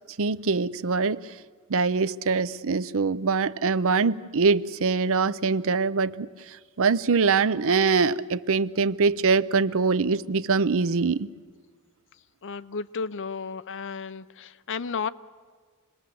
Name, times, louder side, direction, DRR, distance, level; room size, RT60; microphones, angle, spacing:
voice 1, 0.2-1.3 1.7-11.3, right 4 dB, 65° right, 0.6 m, -23 dB
voice 2, 12.4-15.1, left 5 dB, 55° left, 0.6 m, -33 dB
27.0 x 20.5 x 7.7 m
head